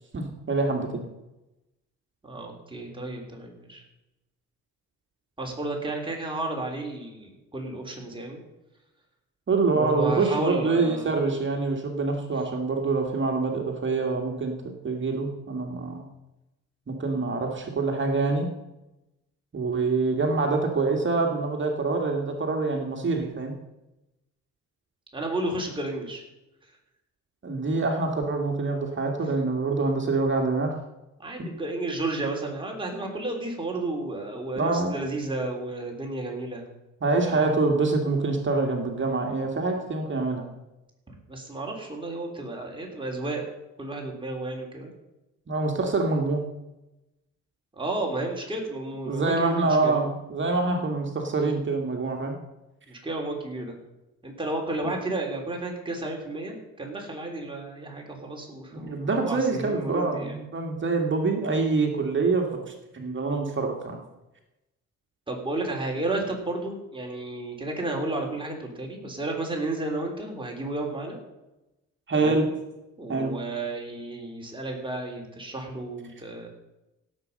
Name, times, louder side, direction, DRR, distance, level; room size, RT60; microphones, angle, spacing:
voice 1, 0.1-1.0 9.5-16.1 16.9-18.5 19.5-23.5 27.4-30.8 31.4-31.5 32.9-33.1 34.6-34.9 37.0-40.5 45.5-46.5 49.1-52.4 58.7-64.0 72.1-72.5 73.1-73.3, right 3 dB, 40° right, 2 dB, 2.1 m, -26 dB
voice 2, 2.2-3.8 5.4-8.4 9.7-11.2 25.1-26.2 31.2-36.7 37.2-37.4 41.3-43.5 43.8-44.9 47.7-50.0 52.9-53.8 54.2-60.4 65.3-71.2 72.1-72.5 73.0-76.5, right 2 dB, 15° right, 0 dB, 3.5 m, -32 dB
16.5 x 7.7 x 5.4 m, 0.97 s
cardioid pair, 90°, 30 cm